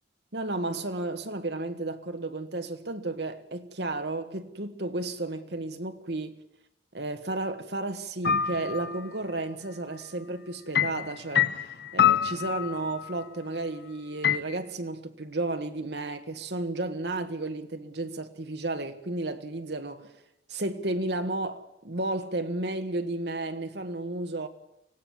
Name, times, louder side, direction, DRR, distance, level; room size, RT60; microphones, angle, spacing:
voice 1, 0.3-6.4 6.9-20.1 20.5-24.5, right 2 dB, 65° right, 1.7 m, -33 dB
sound 1, 8.2-9.0 10.7-13.1 14.2-14.4, left 9 dB, 60° left, 1.0 m, -25 dB
24.5 x 17.0 x 7.3 m
head